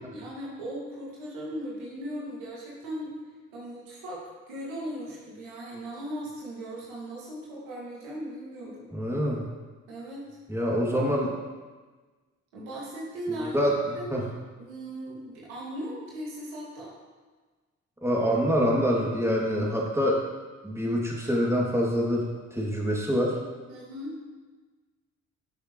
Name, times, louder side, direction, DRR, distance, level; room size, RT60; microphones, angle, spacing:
voice 1, 0.1-3.1 3.5-8.9 9.9-10.3 12.5-13.7 13.9-14.2 14.6-16.9 23.7-24.2, right 1 dB, 85° right, -5 dB, 2.5 m, -38 dB
voice 2, 8.9-9.4 10.5-11.3 13.5-13.7 14.1-14.2 18.0-20.2 20.6-22.2 22.5-23.4, equal, 5° right, -3 dB, 2.7 m, -25 dB
12.5 x 6.4 x 3.2 m, 1.3 s
hypercardioid pair, 50°, 37 cm